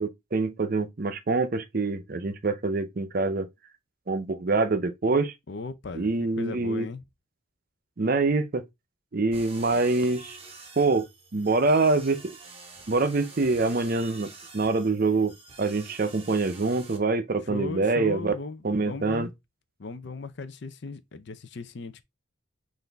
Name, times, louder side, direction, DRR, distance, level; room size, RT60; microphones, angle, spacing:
voice 1, 0.0-3.5 4.1-5.3 5.9-6.9 8.0-8.6 9.1-10.4 10.8-11.1 11.3-12.3 12.9-15.3 15.6-18.3 18.6-19.3, right 3 dB, 45° right, 0.5 m, -25 dB
voice 2, 5.5-7.0 17.5-19.3 19.8-22.0, left 3 dB, 55° left, 0.5 m, -37 dB
sound 1, 9.3-17.0, right 3 dB, 30° right, 1.1 m, -47 dB
5.9 x 2.6 x 3.4 m
head